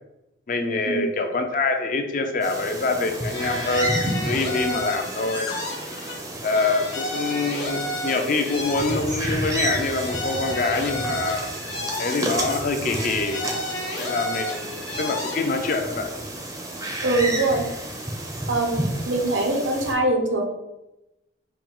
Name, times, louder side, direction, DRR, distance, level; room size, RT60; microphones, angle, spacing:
voice 1, 0.5-5.5 6.4-11.5 12.0-13.4 14.0-14.7 15.0-16.1, left 3 dB, 45° left, 5 dB, 0.4 m, -25 dB
sound 1, 2.4-19.9, right 1 dB, 20° right, 0.5 m, -31 dB
sound 2, 3.3-6.2 6.5-9.4 9.7-12.6 12.9-15.8, left 1 dB, 65° left, 1.0 m, -32 dB
voice 2, 17.0-17.6 18.5-20.5, right 2 dB, 85° right, 2 dB, 0.7 m, -23 dB
4.3 x 2.3 x 3.7 m, 0.92 s
head